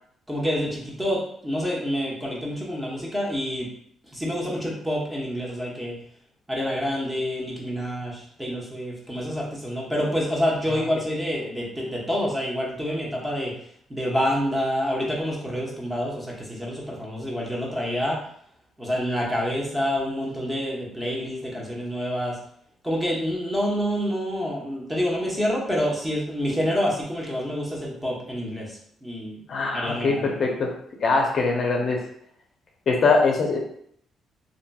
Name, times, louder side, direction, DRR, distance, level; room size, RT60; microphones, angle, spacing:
voice 1, 0.3-3.7 4.1-5.9 6.5-13.5 13.9-18.2 18.8-22.4 22.8-29.4 29.7-30.4, equal, 10° right, -3 dB, 0.9 m, -27 dB
voice 2, 29.5-30.7 31.0-32.0 32.9-33.6, left 4 dB, 50° left, 0 dB, 0.5 m, -22 dB
2.8 x 2.6 x 2.2 m, 0.67 s
cardioid pair, 90°, 0 cm